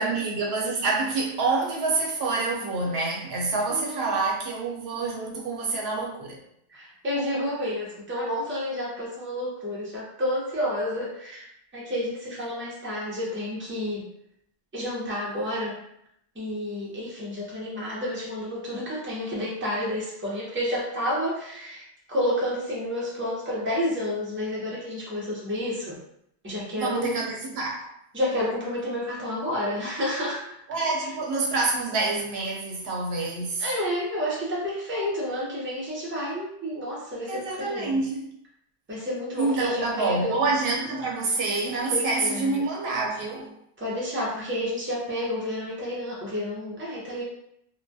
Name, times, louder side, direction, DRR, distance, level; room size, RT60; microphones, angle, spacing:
voice 1, 0.0-6.4 26.8-27.8 30.7-33.7 37.3-38.3 39.4-43.5, right 3 dB, 80° right, -1 dB, 0.8 m, -27 dB
voice 2, 3.7-4.2 6.7-11.5 11.7-14.0 14.7-15.8 16.4-21.8 22.1-26.0 26.4-27.2 28.1-30.6 33.6-38.0 38.9-40.4 41.9-42.6 43.8-47.2, left 1 dB, 15° right, -6 dB, 0.5 m, -30 dB
2.2 x 2.1 x 2.6 m, 0.74 s
omnidirectional pair, 1.0 m